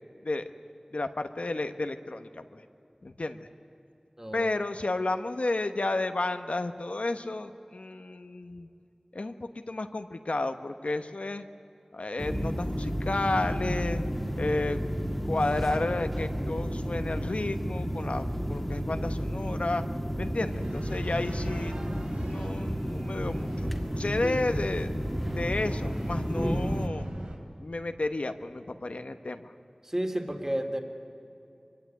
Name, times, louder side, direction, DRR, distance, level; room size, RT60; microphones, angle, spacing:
voice 1, 0.9-2.6 3.0-3.5 4.3-8.7 9.1-11.4 11.9-14.0 14.4-14.8 15.3-19.8 20.2-21.7 22.3-24.9 25.3-27.1 27.6-29.5, left 2 dB, 85° left, 8 dB, 1.2 m, -32 dB
voice 2, 4.2-4.5 24.2-24.4 29.8-30.8, right 1 dB, 20° right, 4 dB, 2.9 m, -31 dB
sound 1, 12.2-26.9, equal, 5° left, 1.9 m, -32 dB
sound 2, 20.5-27.4, right 1 dB, 85° right, 4.0 m, -41 dB
24.5 x 23.5 x 9.8 m, 2.6 s
wide cardioid pair, 45°, 2 cm